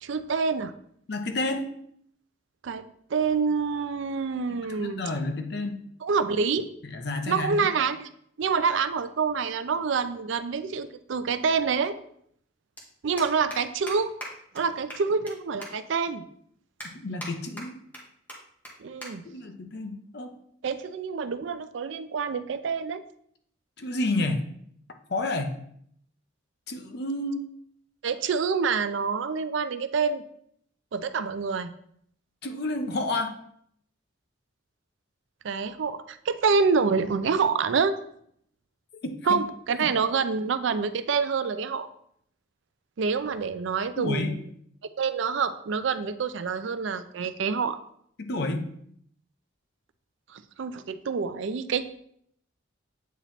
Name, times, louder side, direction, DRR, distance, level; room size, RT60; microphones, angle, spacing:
voice 1, 0.0-0.7 2.6-2.8 3.1-5.0 6.0-6.7 7.3-8.1 8.4-11.9 13.0-14.1 14.5-16.2 18.8-19.2 20.6-23.0 28.0-30.2 30.9-31.7 35.4-37.9 39.3-41.9 43.0-44.4 45.0-47.8 50.3-51.8, right 5 dB, 65° right, 11 dB, 0.4 m, -27 dB
voice 2, 1.1-1.7 4.8-5.8 6.8-7.7 17.0-17.8 19.2-20.3 23.8-24.4 25.1-25.5 26.7-27.5 32.4-33.3 39.0-39.4 39.8-39.9 44.0-44.3 48.2-48.7, left 2 dB, 55° left, 5 dB, 0.7 m, -30 dB
sound 1, 10.5-10.6 12.0-12.1 12.3-12.5 12.8-12.9 13.2-13.6 13.9-14.0 14.2-14.3 14.6-14.7 14.9-15.3 15.6-15.7 16.2-16.3 16.8-17.3 17.6-18.0 18.3-18.4 18.6-18.7 19.0-19.1 19.4-19.7 20.4-20.7, equal, 10° left, 1.2 m, -39 dB
8.1 x 3.0 x 4.2 m, 0.67 s
head